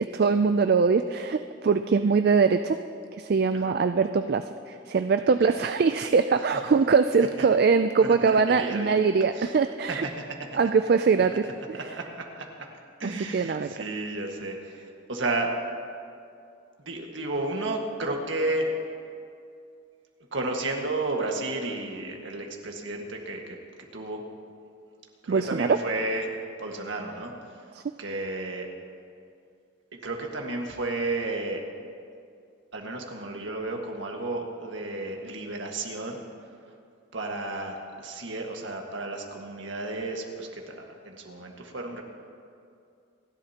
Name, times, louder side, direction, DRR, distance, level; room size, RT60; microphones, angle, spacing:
voice 1, 0.0-2.8 3.1-10.1 10.5-11.4 11.7-12.0 13.0-13.7 25.3-25.8 27.7-27.8, right 5 dB, 50° right, 9 dB, 0.3 m, -22 dB
voice 2, 8.2-9.0 9.4-9.6 11.7-12.6 13.0-15.5 16.8-18.7 20.3-23.4 23.9-24.2 25.2-26.3 26.6-27.3 28.0-28.7 30.0-31.6 32.7-36.2 37.1-42.0, right 2 dB, 70° right, 1 dB, 1.7 m, -32 dB
28.5 x 11.5 x 2.9 m, 2.4 s
head